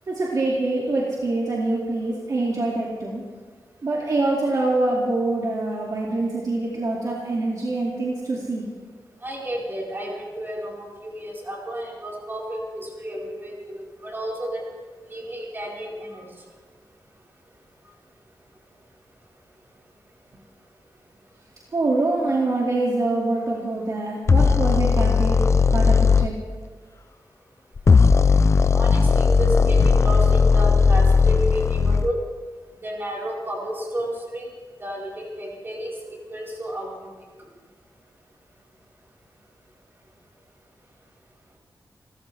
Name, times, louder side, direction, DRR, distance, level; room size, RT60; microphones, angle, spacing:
voice 1, 0.1-3.2 3.8-8.7 21.7-25.4 25.7-26.3, right 2 dB, 50° right, -4 dB, 2.5 m, -25 dB
voice 2, 9.2-14.6 15.1-16.3 28.7-32.2 32.8-34.5 34.8-37.1, right 1 dB, 30° right, -4 dB, 4.7 m, -31 dB
sound 1, 24.3-26.3 27.8-32.1, left 5 dB, 35° left, 0.5 m, -17 dB
29.0 x 14.0 x 3.5 m, 1.5 s
wide cardioid pair, 155°, 8 cm